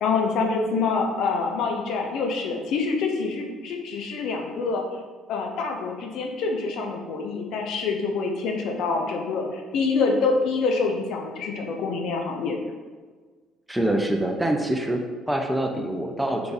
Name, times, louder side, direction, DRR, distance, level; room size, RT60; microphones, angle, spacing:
voice 1, 0.0-4.8 5.3-12.6, left 4 dB, 60° left, 2 dB, 0.6 m, -26 dB
voice 2, 13.7-16.5, right 1 dB, 5° right, 3 dB, 0.5 m, -25 dB
3.8 x 3.3 x 3.9 m, 1.4 s
figure-of-eight pair, 50°, 0 cm